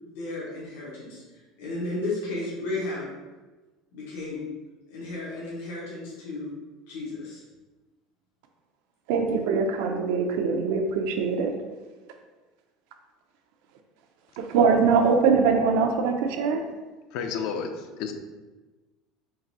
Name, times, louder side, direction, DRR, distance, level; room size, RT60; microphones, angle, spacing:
voice 1, 0.1-1.2 1.6-3.1 3.9-4.4 4.9-6.5 6.9-7.4, left 2 dB, 90° left, -6 dB, 1.2 m, -33 dB
voice 2, 9.1-11.5 14.4-16.6, right 5 dB, 75° right, 5 dB, 0.5 m, -22 dB
voice 3, 17.1-18.1, left 6 dB, 60° left, 6 dB, 0.4 m, -31 dB
3.9 x 2.6 x 4.0 m, 1.2 s
cardioid pair, 155°, 0 cm